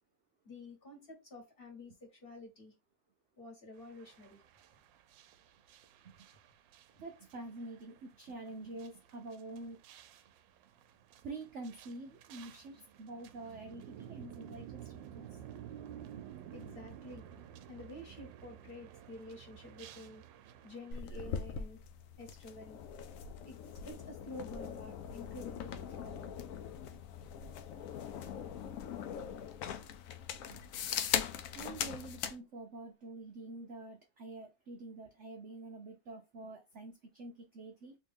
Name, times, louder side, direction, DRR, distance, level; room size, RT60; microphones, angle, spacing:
voice 1, 0.4-2.7 3.4-4.4 12.7-12.8 16.5-17.2 17.7-20.2 20.6-21.8 22.2-22.8 23.4-23.6 23.8-26.2, left 2 dB, 30° left, 1.6 m, -49 dB
sound 1, 3.7-21.0, right 10 dB, 85° right, 1.3 m, -53 dB
voice 2, 7.0-9.8 11.2-15.4 16.1-16.2 30.5-30.6 31.3-38.0, right 2 dB, 65° right, 0.7 m, -47 dB
sound 2, 20.9-32.4, left 8 dB, 70° left, 0.8 m, -40 dB
3.1 x 3.1 x 3.5 m
omnidirectional pair, 1.9 m